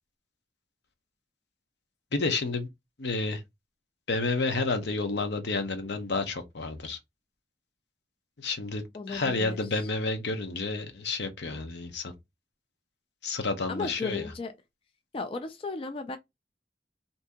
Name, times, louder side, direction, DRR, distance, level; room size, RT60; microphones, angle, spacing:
voice 1, 2.1-2.7 3.0-3.4 4.1-7.0 8.4-12.1 13.2-14.2, left 3 dB, 75° left, 0.8 m, -30 dB
voice 2, 8.9-9.9 13.7-14.5 15.1-16.2, left 3 dB, 30° left, 0.3 m, -35 dB
2.7 x 2.7 x 3.5 m
head